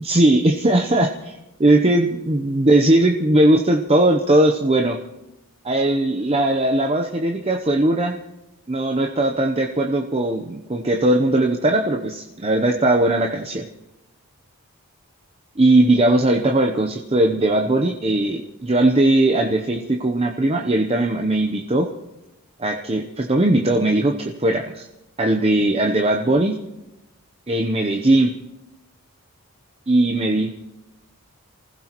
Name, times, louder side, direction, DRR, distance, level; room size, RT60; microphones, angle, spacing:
voice 1, 0.0-1.3 1.6-5.0 5.6-8.2 8.7-13.6 15.6-21.9 22.6-24.9 25.2-26.5 27.5-28.3 29.9-30.5, right 1 dB, 25° right, 3 dB, 0.8 m, -19 dB
28.5 x 15.5 x 3.0 m, 0.95 s
head